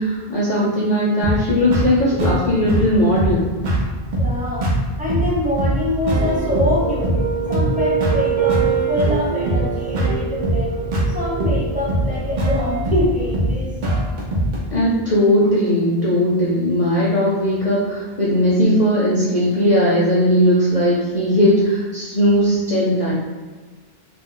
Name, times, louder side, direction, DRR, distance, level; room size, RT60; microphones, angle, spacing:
voice 1, 0.0-3.4 14.7-23.1, equal, 45° left, -6 dB, 0.6 m, -18 dB
sound 1, 1.2-14.6, right 1 dB, 55° right, 0.7 m, -22 dB
voice 2, 4.2-4.7 5.0-7.1 7.5-10.7 11.1-13.7, left 1 dB, 10° right, -7 dB, 0.7 m, -24 dB
sound 2, 6.1-12.7, right 8 dB, 75° right, 1.1 m, -25 dB
2.5 x 2.1 x 3.7 m, 1.4 s
omnidirectional pair, 1.0 m